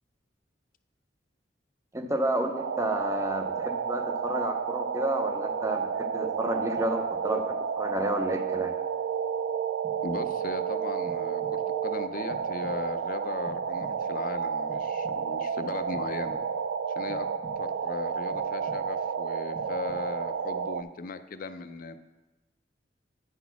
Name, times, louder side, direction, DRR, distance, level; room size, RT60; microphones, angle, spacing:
voice 1, 1.9-8.7, right 1 dB, 15° right, 6 dB, 0.6 m, -31 dB
sound 1, 2.5-20.8, right 7 dB, 85° right, 0.3 m, -31 dB
sound 2, 9.8-10.6 11.1-11.8 12.3-13.1 13.4-14.3 14.7-15.5 15.9-16.7 17.1-17.9 18.3-19.1 19.5-20.3, equal, 35° right, 1.1 m, -49 dB
voice 2, 10.0-16.4 16.9-17.3 17.6-22.0, left 3 dB, 50° left, 10 dB, 0.5 m, -37 dB
9.2 x 4.1 x 5.8 m, 1.1 s
head